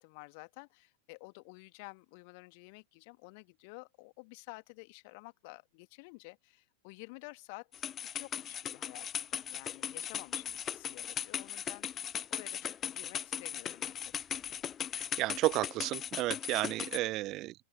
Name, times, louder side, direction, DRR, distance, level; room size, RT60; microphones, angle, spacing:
voice 1, 0.0-14.1, left 31 dB, 45° left, 1.5 m, -51 dB
sound 1, 7.7-17.0, left 9 dB, 25° left, 0.4 m, -38 dB
voice 2, 14.9-17.5, right 18 dB, 35° right, 0.4 m, -32 dB
open air
figure-of-eight pair, 90°, 0 cm